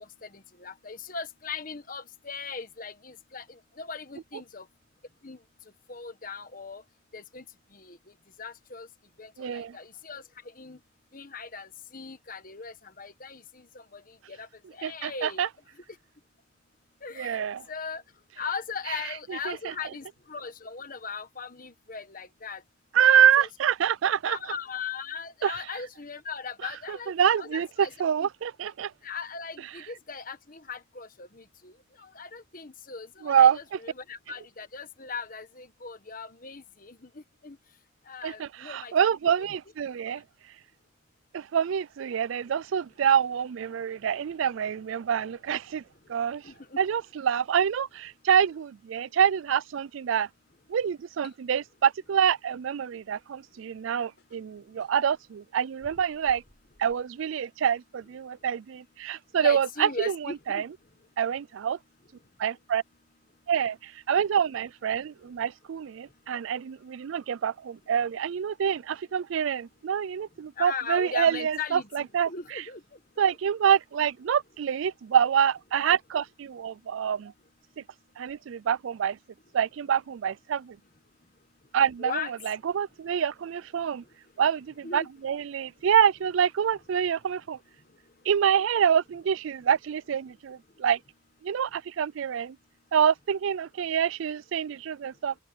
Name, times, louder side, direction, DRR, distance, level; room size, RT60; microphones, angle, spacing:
voice 1, 0.2-3.4 3.8-4.6 5.2-5.4 5.9-6.8 7.1-7.4 7.7-8.0 8.4-8.9 9.2-10.2 10.6-10.8 11.1-13.4 13.9-14.0 14.3-15.4 17.0-18.0 18.4-22.6 23.0-23.5 24.2-27.1 27.4-27.9 28.2-28.3 29.0-31.7 32.0-37.0 37.4-37.6 38.1-39.1 46.4-46.8 59.4-60.6 70.6-71.9 72.3-72.8 82.0-82.3 84.8-85.1, left 5 dB, 40° left, 1.4 m, -38 dB
voice 2, 9.4-9.8 14.8-15.5 17.2-17.6 18.9-19.0 19.3-19.7 22.9-24.4 25.4-25.5 26.9-28.9 33.2-33.8 38.2-40.2 41.3-45.8 46.1-46.4 46.8-50.3 50.7-56.4 56.8-60.7 61.2-61.8 62.4-62.8 63.5-72.6 73.2-77.3 77.8-77.9 78.2-79.2 79.5-80.8 81.7-84.0 84.4-87.6 88.3-91.0 91.4-92.6 92.9-95.3, right 8 dB, 75° right, 0.4 m, -26 dB
sound 1, 51.2-51.4 53.3-53.4 54.0-55.0 55.8-57.1, left 2 dB, 60° left, 7.9 m, -57 dB
head